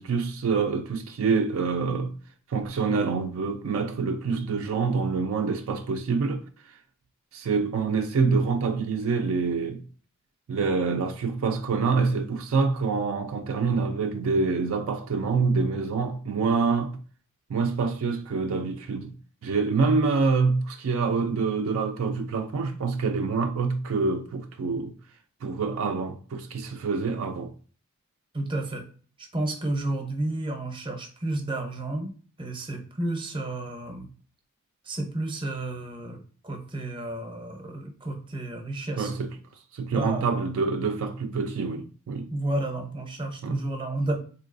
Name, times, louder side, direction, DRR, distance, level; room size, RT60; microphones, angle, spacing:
voice 1, 0.0-2.2 2.5-6.8 7.3-9.8 10.5-17.0 17.5-19.1 19.4-24.9 25.4-27.5 38.9-39.3 39.7-42.3 43.4-43.6, right 4 dB, 65° right, 0.4 m, -26 dB
voice 2, 28.3-28.9 29.2-32.1 32.4-34.1 34.8-39.1 39.9-40.3 42.3-44.2, right 2 dB, 20° right, 0.7 m, -31 dB
3.8 x 2.7 x 2.5 m
head